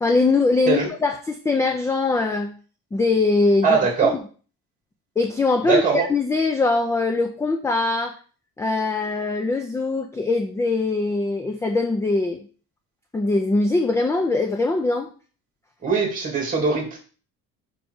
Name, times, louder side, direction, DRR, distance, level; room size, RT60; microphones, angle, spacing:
voice 1, 0.0-2.5 2.9-4.1 5.2-8.2 8.6-12.4 13.1-15.1, left 3 dB, 10° left, 5 dB, 0.4 m, -22 dB
voice 2, 3.6-4.1 5.7-6.0 15.8-17.0, right 5 dB, 25° right, 1 dB, 2.4 m, -21 dB
5.3 x 4.5 x 6.1 m, 0.40 s
cardioid pair, 170°, 34 cm